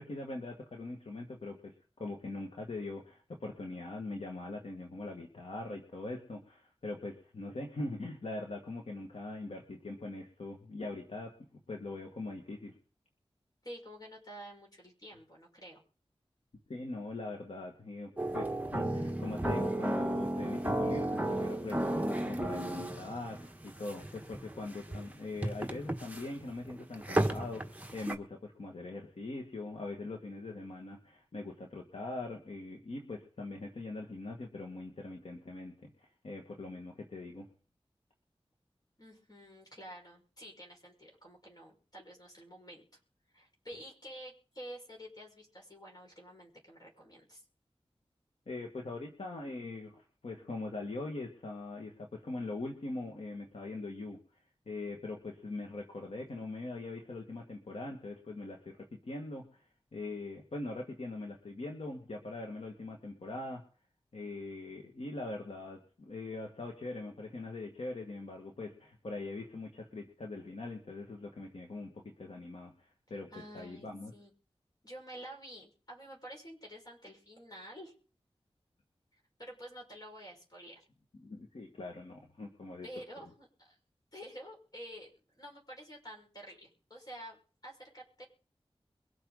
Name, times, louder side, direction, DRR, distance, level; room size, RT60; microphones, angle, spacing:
voice 1, 0.0-11.3 11.7-12.7 16.7-37.5 48.5-54.2 54.7-59.6 59.9-63.6 64.1-72.7 73.1-74.1 81.2-82.9, left 2 dB, 85° left, 1 dB, 2.0 m, -42 dB
voice 2, 13.6-15.8 39.0-42.9 43.3-47.4 73.3-74.3 74.8-78.0 79.1-80.9 82.8-83.8 84.1-88.2, equal, 40° left, 0 dB, 5.8 m, -49 dB
sound 1, 18.2-28.2, right 1 dB, 15° right, 1.3 m, -34 dB
23.0 x 7.9 x 4.1 m, 0.39 s
wide cardioid pair, 70°, 10 cm